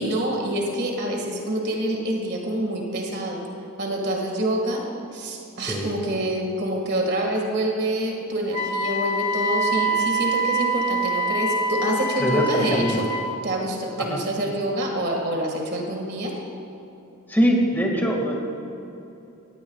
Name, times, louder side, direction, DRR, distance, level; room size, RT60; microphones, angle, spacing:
voice 1, 0.0-3.4 3.8-4.8 5.1-13.1 13.4-16.3, right 1 dB, 50° right, 0 dB, 2.0 m, -26 dB
Wind instrument woodwind instrument, 8.5-13.3, right 1 dB, 35° left, 1.2 m, -25 dB
voice 2, 12.2-13.0 14.1-14.2 17.3-18.3, equal, 10° left, -1 dB, 1.9 m, -22 dB
18.0 x 16.5 x 2.4 m, 2.9 s
head